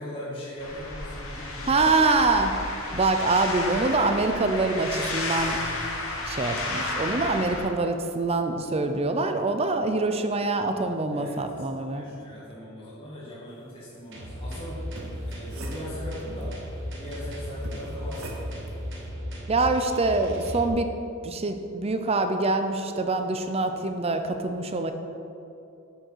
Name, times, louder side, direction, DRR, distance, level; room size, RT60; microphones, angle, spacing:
voice 1, 0.0-2.2 11.1-11.4 11.9-14.8 15.2-16.6 17.0-18.6, equal, 25° left, -9 dB, 1.6 m, -39 dB
sound 1, 0.6-7.6, left 2 dB, 80° left, 1.6 m, -32 dB
voice 2, 1.7-2.5 2.9-5.6 6.3-12.0 19.5-20.9 21.2-24.9, right 3 dB, 30° right, 7 dB, 0.5 m, -25 dB
sound 2, 14.1-20.7, equal, 60° right, 1.5 m, -36 dB
sound 3, 14.8-16.4 17.6-18.8, right 2 dB, 85° right, 1.1 m, -43 dB
8.9 x 6.5 x 4.6 m, 2.8 s
head